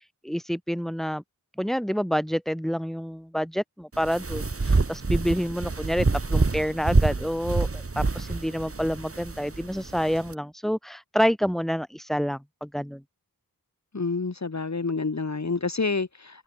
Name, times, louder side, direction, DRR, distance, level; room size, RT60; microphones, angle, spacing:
voice 1, 0.2-1.2 1.6-13.0, equal, ahead, 5.8 m, -28 dB
sound 1, 3.9-10.3, right 3 dB, 35° right, 1.6 m, -27 dB
voice 2, 13.9-16.4, left 4 dB, 45° left, 1.9 m, -28 dB
wide cardioid pair, 50°, 37 cm